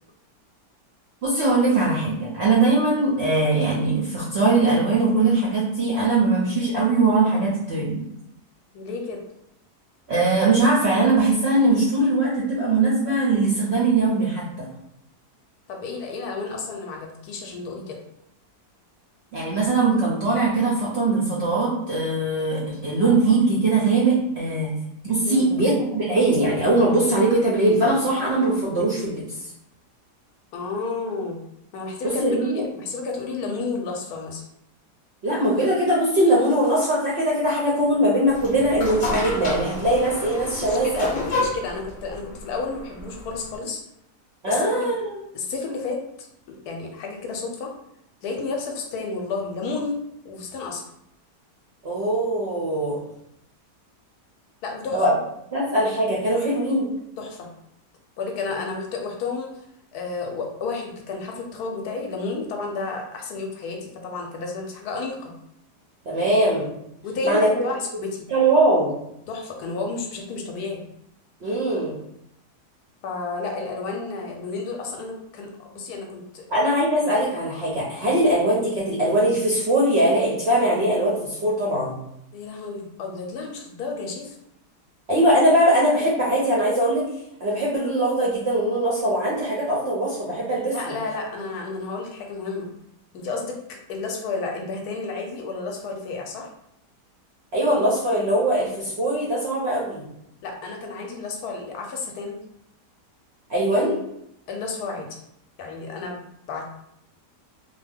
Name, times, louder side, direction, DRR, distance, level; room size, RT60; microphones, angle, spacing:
voice 1, 1.2-8.0 10.1-14.7 19.3-24.8 25.0-29.2 32.2-32.6 35.2-41.1 44.4-45.2 51.8-53.0 54.9-55.2 55.5-56.9 66.1-66.7 67.2-67.5 68.3-68.9 71.4-72.0 76.5-82.0 85.1-87.0 87.4-90.9 97.5-100.0 103.5-104.0, right 2 dB, 60° right, -6 dB, 0.6 m, -21 dB
voice 2, 8.7-9.2 15.7-18.0 25.2-25.5 30.5-31.4 31.7-34.4 40.6-43.8 44.5-44.8 45.3-47.7 48.2-50.8 54.6-55.0 57.2-57.5 58.2-59.6 59.9-65.3 67.0-68.3 69.3-70.8 73.0-76.5 77.0-77.1 82.3-84.4 90.7-92.7 93.1-96.5 100.4-102.4 104.5-105.2 105.6-106.2 106.5-106.7, left 4 dB, 75° left, 1 dB, 1.0 m, -31 dB
sound 1, 38.3-43.6, left 2 dB, 50° left, 0.6 m, -30 dB
2.7 x 2.1 x 3.3 m, 0.78 s
omnidirectional pair, 1.7 m